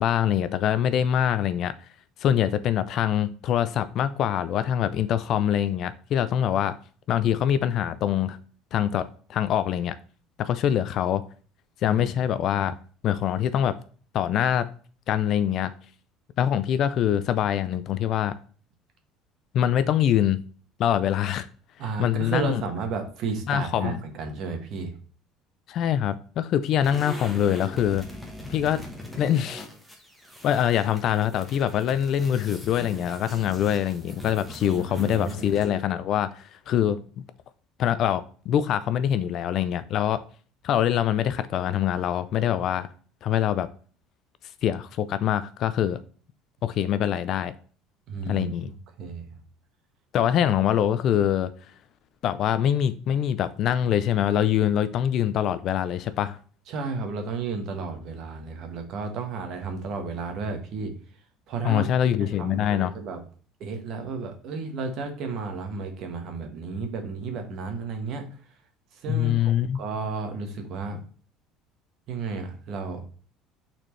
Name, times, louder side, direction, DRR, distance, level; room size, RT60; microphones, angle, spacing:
voice 1, 0.0-1.7 2.2-6.8 7.1-8.4 8.7-10.0 10.4-11.2 11.8-12.7 13.0-13.8 14.1-14.7 15.1-15.7 16.4-18.4 19.5-20.4 20.8-21.5 22.0-22.6 23.5-24.0 25.7-28.1 28.4-28.8 29.2-29.7 30.4-37.2 37.8-40.2 40.6-42.9 43.2-43.7 44.6-46.0 46.6-47.5 48.3-48.7 50.1-51.5 52.2-56.4 61.6-62.9 69.1-69.8, left 10 dB, 40° left, 0.4 m, -24 dB
voice 2, 11.9-12.2 12.5-12.7 21.8-24.9 34.7-35.4 48.1-49.3 56.7-60.9 61.5-61.9 62.2-63.2 63.6-68.3 68.9-71.0 72.1-73.0, right 4 dB, 45° right, 1.3 m, -33 dB
sound 1, 26.8-35.8, left 1 dB, 5° right, 1.1 m, -41 dB
8.9 x 4.3 x 3.2 m
cardioid pair, 175°, 0 cm